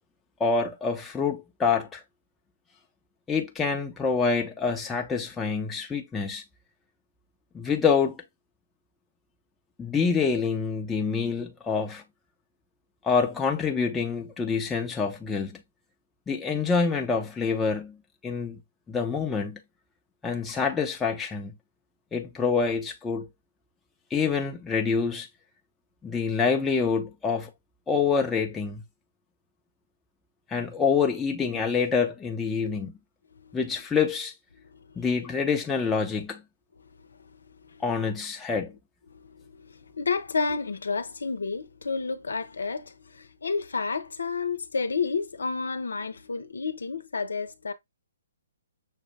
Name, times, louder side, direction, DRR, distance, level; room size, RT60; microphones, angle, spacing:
voice 1, 0.4-2.0 3.3-6.4 7.5-8.2 9.8-12.0 13.0-15.6 16.3-18.0 18.2-18.6 18.9-19.6 20.2-21.5 22.1-23.3 24.1-25.3 26.0-27.5 27.9-28.8 30.5-32.9 33.5-34.3 35.0-36.4 37.8-38.7, left 5 dB, 10° left, 0.9 m, -26 dB
voice 2, 39.1-47.7, left 4 dB, 80° left, 0.8 m, -31 dB
6.4 x 2.3 x 3.3 m
hypercardioid pair, 135°, 0 cm